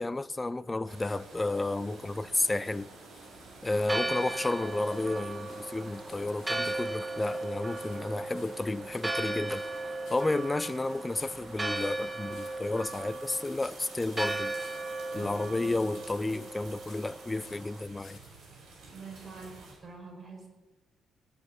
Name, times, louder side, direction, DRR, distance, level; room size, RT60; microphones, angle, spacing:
voice 1, 0.0-2.9 3.6-9.6 10.1-14.5 15.1-18.2, left 2 dB, 20° left, 0.5 m, -32 dB
sound 1, 0.8-19.7, right 3 dB, 75° right, 6.5 m, -51 dB
sound 2, 2.5-18.6 19.3-19.4, left 7 dB, 70° left, 2.9 m, -59 dB
Church bell, 3.7-17.8, right 2 dB, 20° right, 1.4 m, -37 dB
voice 2, 15.1-15.6 18.8-19.5 19.8-20.5, right 4 dB, 40° right, 5.0 m, -46 dB
18.0 x 6.7 x 8.9 m
cardioid pair, 90°, 0 cm